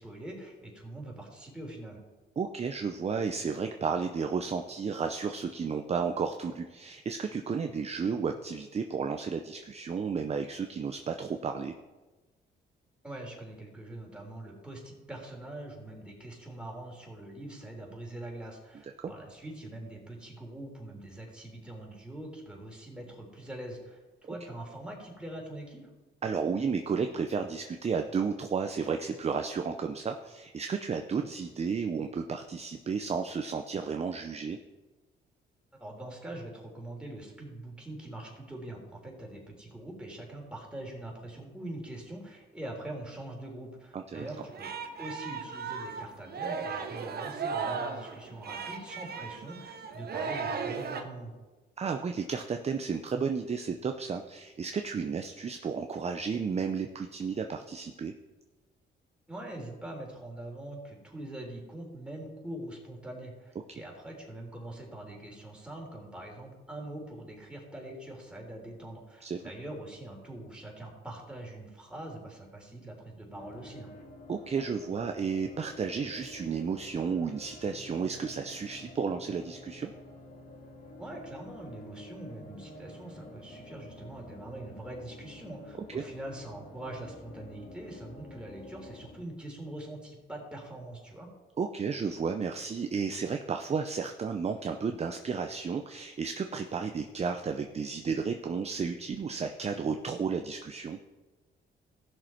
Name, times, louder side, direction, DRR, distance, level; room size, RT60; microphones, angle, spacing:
voice 1, 0.0-2.0 13.0-25.9 35.8-44.7 45.0-51.3 59.3-73.9 81.0-91.3, right 1 dB, 5° right, -1 dB, 3.5 m, -43 dB
voice 2, 2.4-11.7 18.8-19.1 24.2-24.3 26.2-34.6 43.9-44.3 51.8-58.1 69.2-69.5 74.3-79.9 85.9-86.0 91.6-101.0, right 5 dB, 30° right, 5 dB, 0.6 m, -32 dB
Singing, 44.1-51.0, right 5 dB, 55° right, 1.2 m, -36 dB
sound 1, 73.3-89.2, left 1 dB, 45° left, 2.2 m, -49 dB
15.5 x 6.3 x 4.5 m, 1.2 s
cardioid pair, 90°, 20 cm